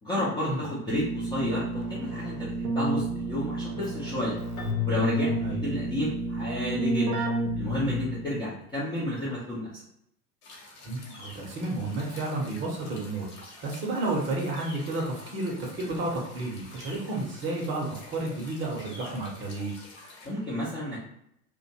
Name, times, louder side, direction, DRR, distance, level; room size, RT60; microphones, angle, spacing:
voice 1, 0.0-4.4 4.9-7.2 7.5-9.8 20.2-21.0, equal, 10° left, -9 dB, 0.4 m, -31 dB
Keyboard (musical), 0.9-8.4, right 2 dB, 85° right, 0.6 m, -31 dB
Keyboard (musical) 2, 4.6-6.8, left 11 dB, 65° left, 0.8 m, -34 dB
sound 1, 10.4-20.3, left 2 dB, 45° left, 1.1 m, -48 dB
voice 2, 10.8-13.3 13.6-19.7, right 2 dB, 25° right, -1 dB, 0.7 m, -31 dB
2.5 x 2.2 x 2.7 m, 0.75 s
figure-of-eight pair, 85°, 46 cm